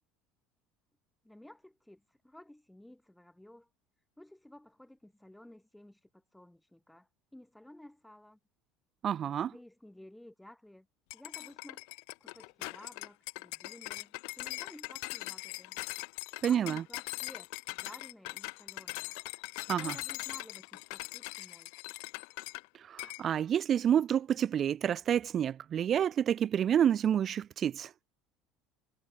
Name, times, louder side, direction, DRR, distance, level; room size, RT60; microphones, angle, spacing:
voice 1, 1.2-3.7 4.2-8.4 9.2-10.9 11.1-11.8 12.2-15.8 16.4-19.1 19.7-21.8, left 1 dB, 5° left, 7.8 m, -54 dB
voice 2, 9.0-9.5 16.4-16.8 19.7-20.0 22.9-27.9, right 9 dB, 25° right, 0.6 m, -28 dB
sound 1, 11.1-22.7 23.0-23.2, left 40 dB or more, 70° left, 3.1 m, -41 dB
cardioid pair, 180°, 0 cm